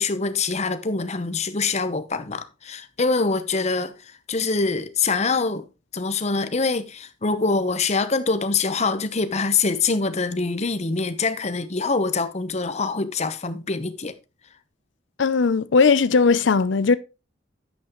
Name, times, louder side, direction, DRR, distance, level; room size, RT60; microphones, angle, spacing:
voice 1, 0.0-5.6 5.9-14.1, left 4 dB, 35° left, 0.9 m, -24 dB
voice 2, 15.2-17.0, left 4 dB, 70° left, 0.5 m, -18 dB
10.5 x 8.2 x 3.0 m
head